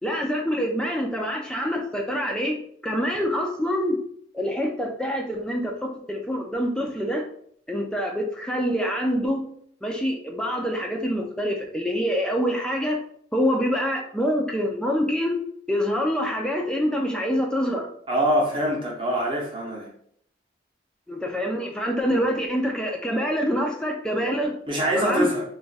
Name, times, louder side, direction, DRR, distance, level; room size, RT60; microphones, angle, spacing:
voice 1, 0.0-2.6 2.8-4.0 4.3-7.2 7.7-9.4 9.8-13.0 13.3-15.4 15.7-17.9 21.1-24.5 24.9-25.3, equal, 5° left, 1 dB, 0.4 m, -25 dB
voice 2, 18.1-19.9 22.1-22.2 24.7-25.4, right 1 dB, 30° right, -2 dB, 0.7 m, -24 dB
2.4 x 2.2 x 3.9 m, 0.65 s
head